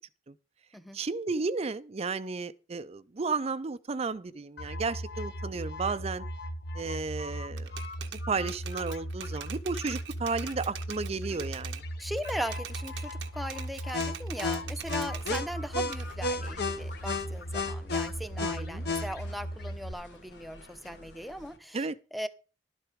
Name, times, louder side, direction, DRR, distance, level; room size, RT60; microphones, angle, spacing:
voice 1, 0.9-6.2 6.7-7.7 8.1-11.8 18.4-18.8 21.7-22.0, right 4 dB, 35° right, 0.5 m, -33 dB
sound 1, 4.6-19.9, left 1 dB, 60° left, 1.1 m, -35 dB
Typewriter, 7.6-11.9 12.2-15.5 15.9-17.6, right 9 dB, 90° right, 1.0 m, -44 dB
voice 2, 12.0-22.3, equal, ahead, 0.7 m, -39 dB
sound 2, 14.8-21.6, left 2 dB, 80° left, 1.7 m, -53 dB
11.5 x 7.7 x 5.0 m
head